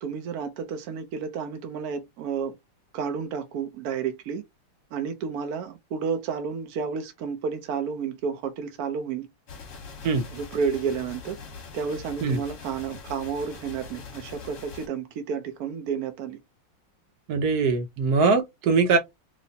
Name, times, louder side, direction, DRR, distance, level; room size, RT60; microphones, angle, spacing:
voice 1, 0.0-2.5 2.9-4.4 4.9-9.3 10.3-11.4 11.7-16.4, right 6 dB, 80° right, 0.8 m, -31 dB
sound 1, 9.5-14.9, left 5 dB, 50° left, 1.0 m, -42 dB
voice 2, 17.3-19.0, right 4 dB, 60° right, 1.1 m, -22 dB
3.1 x 3.0 x 2.7 m
omnidirectional pair, 2.3 m